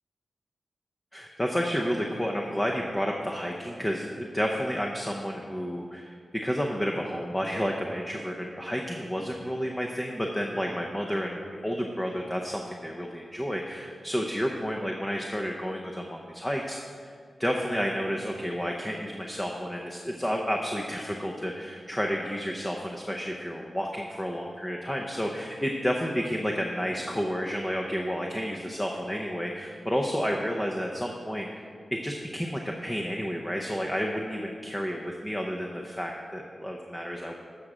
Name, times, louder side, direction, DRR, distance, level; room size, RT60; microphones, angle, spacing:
voice 1, 1.1-17.1 17.4-31.6 31.9-37.3, equal, 10° left, 0 dB, 0.7 m, -31 dB
13.0 x 7.3 x 5.0 m, 2.1 s
wide cardioid pair, 140°, 0 cm